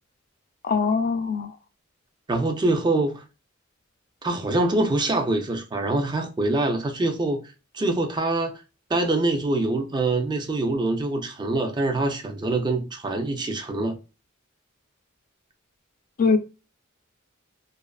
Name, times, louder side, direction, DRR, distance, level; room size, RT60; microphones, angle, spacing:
voice 1, 0.6-1.5 16.2-16.4, left 5 dB, 40° left, 0.4 m, -22 dB
voice 2, 2.3-3.2 4.2-7.4 7.7-8.5 8.9-14.0, right 2 dB, 20° right, 0.4 m, -24 dB
2.4 x 2.4 x 2.3 m
head